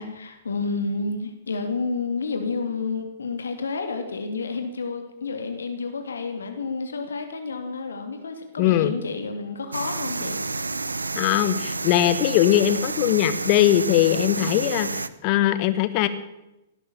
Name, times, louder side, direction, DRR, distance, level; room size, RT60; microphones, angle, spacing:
voice 1, 0.0-10.4 14.4-14.6, left 4 dB, 75° left, 6 dB, 2.6 m, -30 dB
voice 2, 8.6-8.9 11.1-16.1, left 12 dB, 40° left, 13 dB, 1.5 m, -20 dB
sound 1, 9.7-15.1, right 3 dB, 85° right, 0.7 m, -30 dB
17.0 x 12.0 x 7.1 m, 0.93 s
figure-of-eight pair, 110°, 0 cm